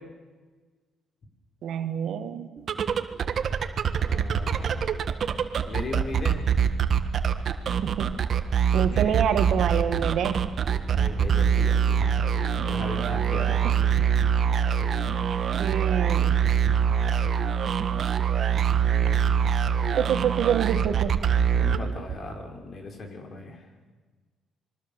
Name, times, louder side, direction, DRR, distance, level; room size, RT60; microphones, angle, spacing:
voice 1, 1.6-2.5 7.8-8.2 8.7-10.5 13.6-13.7 15.6-16.4 20.0-21.2, right 8 dB, 70° right, 8 dB, 2.0 m, -27 dB
sound 1, 2.6-22.3, right 8 dB, 55° right, 1.5 m, -24 dB
voice 2, 4.0-4.9 5.6-6.4 8.8-9.2 10.9-12.2 12.6-13.7 21.6-23.6, left 2 dB, 50° left, 3 dB, 5.7 m, -37 dB
26.5 x 23.0 x 7.3 m, 1.3 s
cardioid pair, 90°, 0 cm